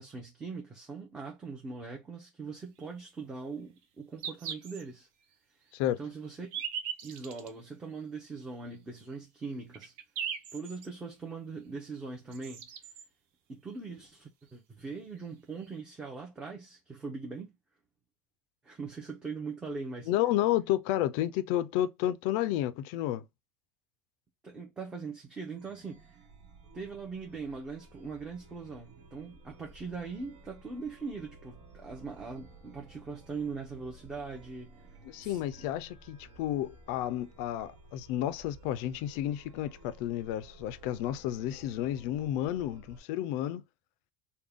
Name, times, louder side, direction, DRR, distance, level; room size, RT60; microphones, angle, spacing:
voice 1, 0.0-5.1 6.0-6.5 7.0-9.9 10.5-12.7 13.5-17.5 18.6-20.1 24.4-26.2 26.7-34.8 35.2-35.7, right 4 dB, 15° right, 0.6 m, -41 dB
sound 1, 2.8-2.9 3.8-3.9 4.2-4.8 5.3-5.4 6.2-7.5 8.3-8.4 9.1-9.2 9.5-10.9 12.0-12.1 12.3-13.0 14.5-14.6 14.8-14.9 15.6-15.7, right 8 dB, 55° right, 0.6 m, -39 dB
voice 2, 20.1-23.3 35.0-43.6, left 13 dB, 60° left, 0.4 m, -31 dB
Chime, 25.5-43.0, right 2 dB, 70° right, 1.4 m, -55 dB
3.6 x 2.2 x 3.4 m
cardioid pair, 170°, 5 cm